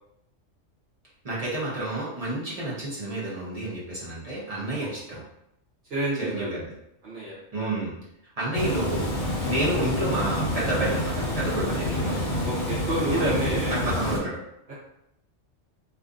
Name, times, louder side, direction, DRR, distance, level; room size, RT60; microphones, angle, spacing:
voice 1, 1.2-5.2 6.2-6.7 7.5-7.9 8.4-9.2 9.4-12.1 13.1-13.3 13.7-14.4, right 1 dB, 35° right, -7 dB, 0.9 m, -30 dB
voice 2, 5.9-6.5 7.0-7.8 11.6-12.0 12.4-13.9, right 1 dB, 60° right, -9 dB, 1.0 m, -29 dB
Water, 8.5-14.2, left 1 dB, 45° left, 1.0 m, -28 dB
2.5 x 2.5 x 2.4 m, 0.80 s
omnidirectional pair, 1.2 m